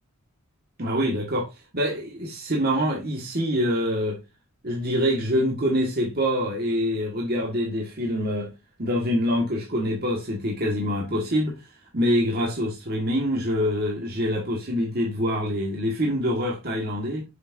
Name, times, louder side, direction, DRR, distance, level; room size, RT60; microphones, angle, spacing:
voice 1, 0.8-4.2 4.6-8.5 8.8-17.2, equal, 45° right, 1.6 m, -25 dB
6.9 x 6.6 x 2.6 m
head